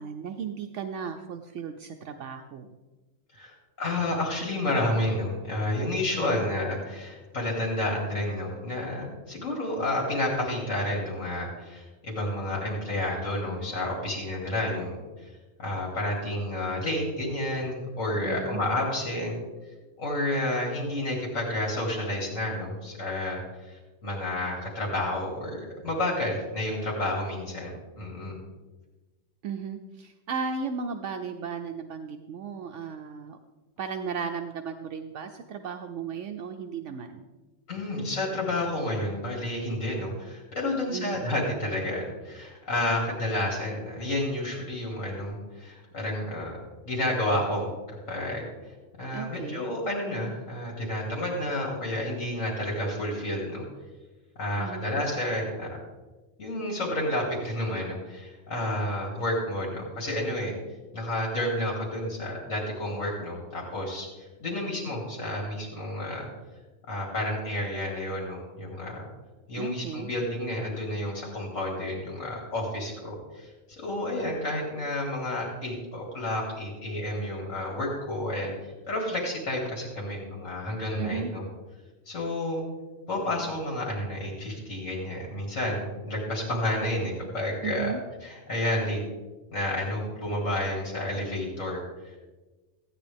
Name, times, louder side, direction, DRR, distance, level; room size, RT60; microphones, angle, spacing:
voice 1, 0.0-2.7 6.2-6.5 18.2-18.6 29.4-33.4 33.8-37.3 40.9-41.3 49.1-49.6 54.6-54.9 69.6-70.1 81.0-81.3 87.6-88.0, right 6 dB, 70° right, 5 dB, 0.9 m, -35 dB
voice 2, 3.3-15.3 15.6-19.4 20.0-28.4 37.7-46.6 46.9-47.7 48.1-53.6 54.4-55.7 56.4-60.5 60.9-66.3 66.9-69.0 69.5-81.4 82.1-82.6 83.1-87.9 88.2-89.0 89.5-92.2, left 1 dB, 75° left, -2 dB, 2.8 m, -30 dB
15.0 x 9.4 x 3.4 m, 1.2 s
omnidirectional pair, 1.3 m